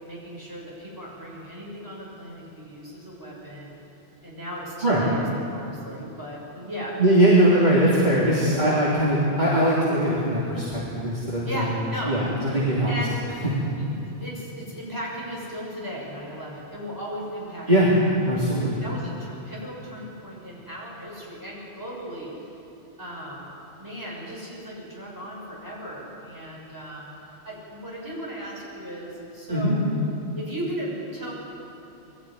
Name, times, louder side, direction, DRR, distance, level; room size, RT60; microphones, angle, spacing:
voice 1, 0.0-3.8 4.2-5.2 5.5-7.4 11.4-12.2 12.5-12.6 12.9-13.2 13.8-22.4 23.0-23.5 23.8-27.1 27.4-29.8 30.3-31.3, equal, 20° right, -5 dB, 6.6 m, -36 dB
voice 2, 7.0-11.7 12.1-12.9 17.7-17.9 18.2-18.7 29.5-29.7, right 1 dB, 40° right, -8 dB, 3.4 m, -21 dB
22.0 x 13.5 x 9.5 m, 3.0 s
omnidirectional pair, 1.1 m